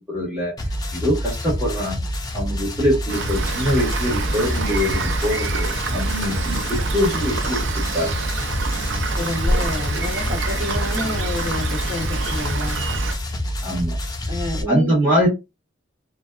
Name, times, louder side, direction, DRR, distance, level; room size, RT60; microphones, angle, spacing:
voice 1, 0.1-0.5 0.9-2.0 2.3-5.7 5.9-8.1 13.6-14.0 14.7-15.3, equal, 15° right, 1.2 m, -23 dB
sound 1, 0.6-14.6, equal, 20° left, 0.4 m, -27 dB
Rain, 3.1-13.1, right 3 dB, 70° right, 0.5 m, -26 dB
voice 2, 9.1-12.7 14.3-14.9, left 2 dB, 40° right, 1.4 m, -28 dB
2.6 x 2.2 x 2.3 m
head